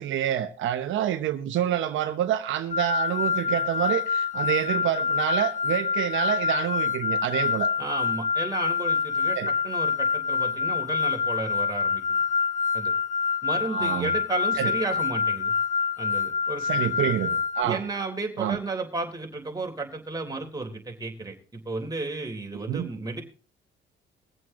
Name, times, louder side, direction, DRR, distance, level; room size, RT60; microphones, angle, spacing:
voice 1, 0.0-7.7 9.4-9.5 13.7-14.1 14.6-14.7 16.6-17.8 18.4-18.6 22.5-22.9, right 11 dB, 80° right, 1.0 m, -27 dB
sound 1, 2.7-17.6, left 6 dB, 40° left, 1.5 m, -26 dB
voice 2, 7.8-9.4 9.6-12.0 12.7-12.9 13.4-15.5 16.0-17.1 17.6-23.2, right 3 dB, 20° right, 3.4 m, -33 dB
22.0 x 7.7 x 3.7 m
cardioid pair, 90°, 20 cm